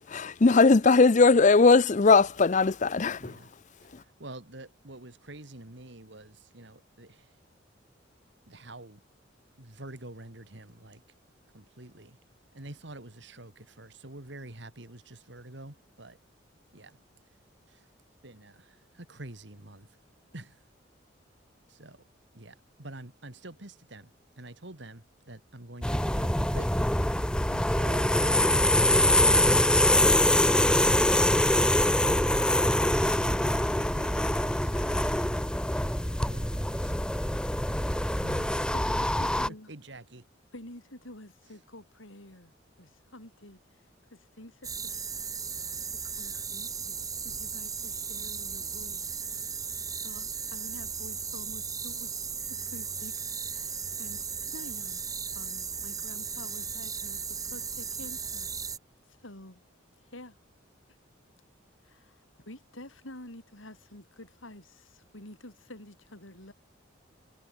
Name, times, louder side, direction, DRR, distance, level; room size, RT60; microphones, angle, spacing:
voice 1, 0.1-3.3, left 4 dB, 40° left, 0.5 m, -19 dB
voice 2, 3.2-3.5 4.2-7.2 8.5-9.0 9.6-11.0 11.5-12.1 12.5-16.2 16.7-17.0 18.2-18.6 19.0-19.9 20.3-20.5 21.8-22.0 22.3-24.1 24.4-26.7 27.5-31.6 32.0-35.2 36.3-37.1 38.2-38.5 39.7-40.2, right 2 dB, 65° right, 2.6 m, -46 dB
sound 1, 25.8-39.5, left 1 dB, 5° left, 1.0 m, -24 dB
voice 3, 38.7-39.8 40.5-42.5 42.8-43.6 44.1-45.3 45.9-49.2 49.7-52.1 52.4-58.5 59.2-59.6 60.0-60.4 61.8-66.5, left 1 dB, 90° left, 7.3 m, -49 dB
sound 2, 44.6-58.8, right 6 dB, 20° right, 5.5 m, -36 dB
head